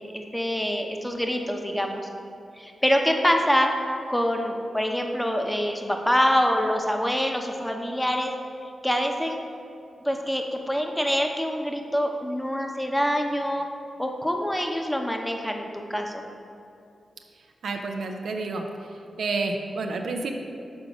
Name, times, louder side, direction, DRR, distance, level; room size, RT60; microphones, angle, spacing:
voice 1, 0.0-2.1 2.6-3.7 4.1-8.3 8.8-9.4 10.0-13.7 14.0-16.2, equal, 10° left, 3 dB, 0.7 m, -25 dB
voice 2, 17.6-18.7 19.2-20.3, right 3 dB, 80° right, 3 dB, 0.4 m, -29 dB
6.0 x 3.8 x 4.9 m, 2.6 s
supercardioid pair, 45°, 0 cm